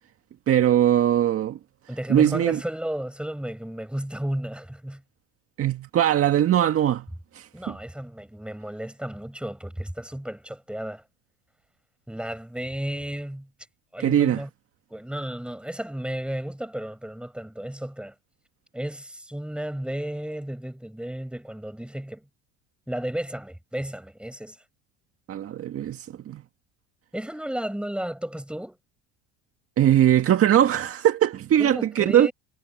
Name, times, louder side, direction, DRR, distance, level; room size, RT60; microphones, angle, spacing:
voice 1, 0.5-1.6 2.1-2.6 5.6-7.0 7.3-7.8 14.0-14.4 25.3-26.4 29.8-32.3, right 11 dB, 45° right, 1.8 m, -21 dB
voice 2, 1.9-5.0 7.5-11.0 12.1-13.5 13.9-14.5 14.9-18.1 18.7-22.2 22.9-24.6 27.1-28.8 31.6-32.3, right 1 dB, 5° right, 7.7 m, -33 dB
hypercardioid pair, 85°, 33 cm